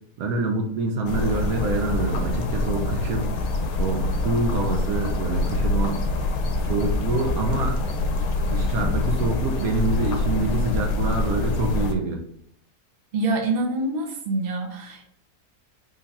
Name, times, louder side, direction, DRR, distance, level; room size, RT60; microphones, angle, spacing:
voice 1, 0.2-3.3 3.8-6.0 6.7-7.8 8.4-12.2, right 2 dB, 70° right, 2 dB, 1.0 m, -26 dB
sound 1, 1.0-11.9, left 2 dB, 80° left, 1.1 m, -25 dB
voice 2, 13.1-15.1, right 2 dB, 45° right, -1 dB, 0.8 m, -26 dB
3.8 x 2.3 x 4.1 m, 0.69 s
omnidirectional pair, 1.6 m